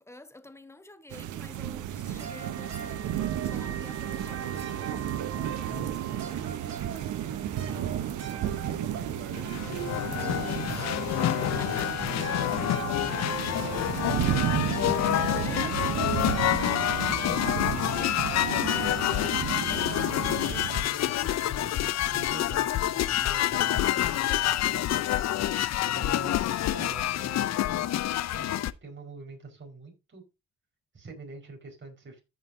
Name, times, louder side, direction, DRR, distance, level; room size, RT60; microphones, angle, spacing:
voice 1, 0.0-3.2 3.4-6.6 11.3-11.9 15.0-18.4, left 1 dB, 10° left, 1.1 m, -50 dB
sound 1, 1.1-20.8, right 11 dB, 80° right, 1.0 m, -33 dB
sound 2, 2.0-18.8, right 7 dB, 60° right, 2.8 m, -40 dB
voice 2, 7.6-14.4 18.7-25.2 25.8-30.2 30.9-32.2, right 3 dB, 40° right, 4.9 m, -46 dB
sound 3, 9.3-28.7, left 13 dB, 60° left, 0.6 m, -27 dB
14.5 x 5.7 x 2.7 m
cardioid pair, 90°, 30 cm